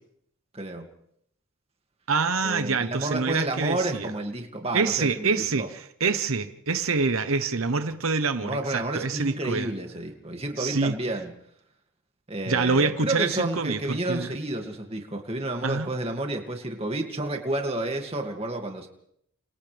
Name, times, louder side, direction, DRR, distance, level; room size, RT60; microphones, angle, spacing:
voice 1, 0.5-0.8 2.4-5.7 8.4-11.3 12.3-18.9, right 2 dB, 30° right, 3 dB, 2.3 m, -30 dB
voice 2, 2.1-4.1 4.7-9.7 10.6-10.9 12.5-14.3 15.6-15.9, right 4 dB, 80° right, 9 dB, 1.0 m, -26 dB
29.5 x 28.0 x 3.5 m, 0.70 s
head